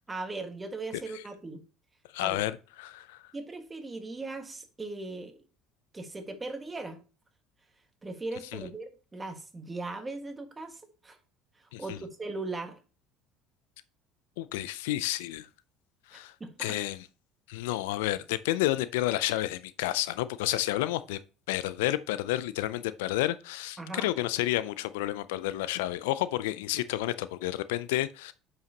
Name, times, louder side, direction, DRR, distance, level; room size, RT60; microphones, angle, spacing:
voice 1, 0.0-1.6 2.2-2.4 3.3-5.4 5.9-7.0 8.0-11.2 11.6-12.8 16.1-16.8 23.8-24.1, right 3 dB, 20° right, 1.7 m, -39 dB
voice 2, 2.1-3.2 8.5-8.6 11.7-12.0 14.4-15.5 16.1-16.3 16.6-17.0 17.5-21.2 21.5-28.3, left 15 dB, 80° left, 0.4 m, -30 dB
9.2 x 5.6 x 2.9 m
hypercardioid pair, 75°, 0 cm